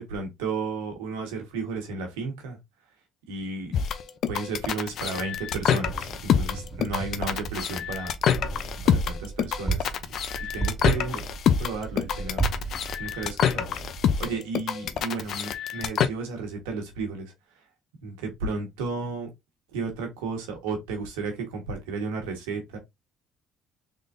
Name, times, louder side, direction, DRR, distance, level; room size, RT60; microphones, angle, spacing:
voice 1, 0.0-2.6 3.3-3.8 4.3-8.1 8.8-9.9 10.5-11.2 11.6-12.4 13.0-13.7 14.2-17.3 18.0-19.3 19.7-22.8, right 4 dB, 90° right, 1.4 m, -33 dB
sound 1, 3.7-16.1, left 8 dB, 60° left, 0.6 m, -26 dB
Wind, 5.3-14.3, right 5 dB, 10° right, 2.0 m, -34 dB
3.8 x 3.7 x 2.6 m
supercardioid pair, 70°, 0 cm